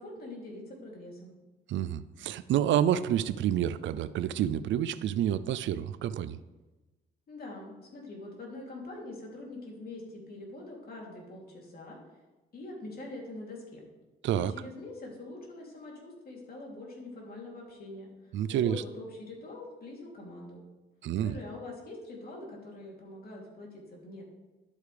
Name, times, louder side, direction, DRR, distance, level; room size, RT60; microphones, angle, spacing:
voice 1, 0.0-1.4 7.3-12.0 12.5-13.8 14.4-20.6 21.2-24.2, left 2 dB, 50° left, -2 dB, 3.1 m, -44 dB
voice 2, 1.7-6.4 14.2-14.5 18.3-18.8 21.0-21.4, right 10 dB, 70° right, 15 dB, 0.5 m, -28 dB
11.5 x 8.1 x 3.4 m, 1.1 s
cardioid pair, 90°, 20 cm